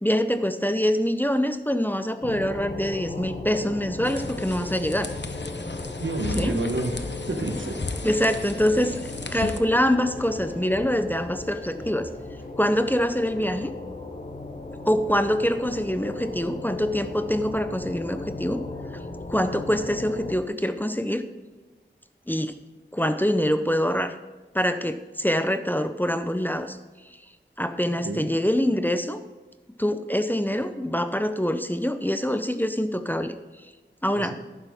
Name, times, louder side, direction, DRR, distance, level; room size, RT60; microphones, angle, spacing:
voice 1, 0.0-5.1 6.4-6.5 8.0-9.0 9.3-12.1 12.6-13.7 14.8-18.6 19.3-21.2 22.3-22.5 22.9-24.2 24.5-26.8 27.1-27.2 27.6-29.2 29.8-33.4 34.0-34.3, equal, 10° left, 10 dB, 0.6 m, -25 dB
sound 1, 2.2-20.3, left 2 dB, 40° left, 1.1 m, -37 dB
campfire in the woods rear, 4.0-9.6, left 3 dB, 65° left, 0.8 m, -35 dB
voice 2, 6.0-6.9 7.3-7.8 28.0-28.3 34.1-34.3, right 2 dB, 80° right, 6 dB, 1.1 m, -28 dB
sound 2, 6.5-12.4, equal, 10° right, 3.3 m, -46 dB
11.0 x 10.0 x 3.6 m, 1.3 s
wide cardioid pair, 40°, 20 cm